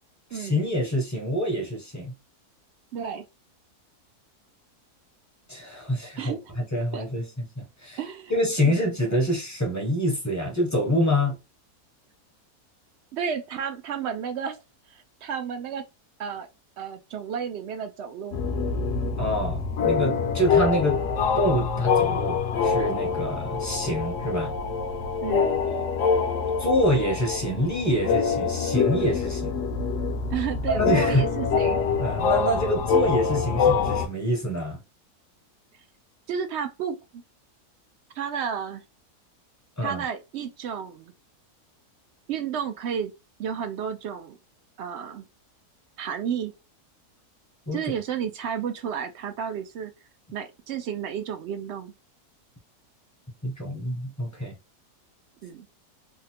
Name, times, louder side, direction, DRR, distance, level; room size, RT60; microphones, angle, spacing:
voice 1, 0.3-2.1 5.5-8.0 8.3-11.4 19.2-21.0 21.4-24.5 26.6-29.5 30.7-31.3 32.0-34.8 39.8-40.0 47.7-47.8 53.4-54.5, equal, 20° left, 0.5 m, -26 dB
voice 2, 2.9-3.3 6.2-6.4 6.9-7.1 8.0-8.3 8.7-8.8 13.1-14.6 14.9-15.8 16.2-16.5 16.8-18.4 25.2-25.5 30.3-31.8 36.3-37.2 38.2-38.8 39.8-41.1 42.3-43.1 43.4-44.4 44.8-45.3 46.0-46.5 47.7-49.9 50.3-51.9 55.4-55.7, right 7 dB, 75° right, 0.6 m, -32 dB
sound 1, 18.3-34.1, left 5 dB, 65° left, 0.8 m, -25 dB
3.5 x 2.1 x 2.8 m
omnidirectional pair, 1.7 m